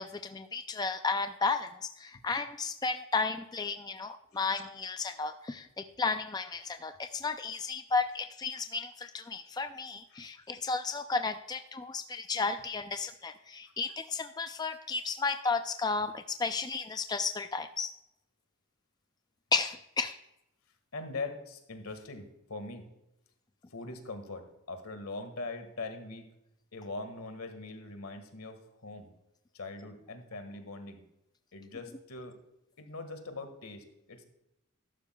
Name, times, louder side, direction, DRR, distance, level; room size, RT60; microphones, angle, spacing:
voice 1, 0.0-17.9 19.5-20.2, left 4 dB, 20° left, 8 dB, 0.4 m, -33 dB
voice 2, 20.9-22.9 23.7-26.3 26.7-29.1 29.5-31.0 31.5-32.4 32.8-34.2, left 3 dB, 85° left, 8 dB, 1.7 m, -42 dB
13.5 x 12.0 x 2.3 m, 0.86 s
head